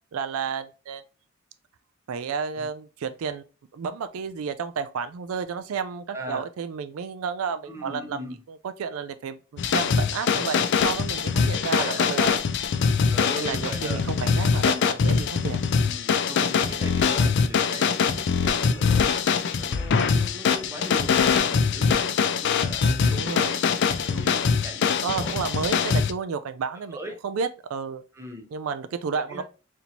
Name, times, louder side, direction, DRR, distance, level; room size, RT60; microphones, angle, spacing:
voice 1, 0.1-1.0 2.1-3.4 3.7-8.2 8.5-12.4 13.4-15.6 23.1-23.5 25.0-27.0 27.2-28.0 28.5-29.4, right 6 dB, 80° right, 0.4 m, -31 dB
voice 2, 6.1-6.5 7.7-8.4 10.3-10.7 11.3-11.5 11.8-12.0 13.1-14.0 14.6-14.9 15.8-19.3 19.6-25.4 26.9-27.2 28.1-28.5 29.1-29.4, right 1 dB, 15° right, 0.8 m, -39 dB
sound 1, 9.6-26.1, left 6 dB, 55° left, 0.4 m, -23 dB
4.2 x 2.7 x 2.8 m
head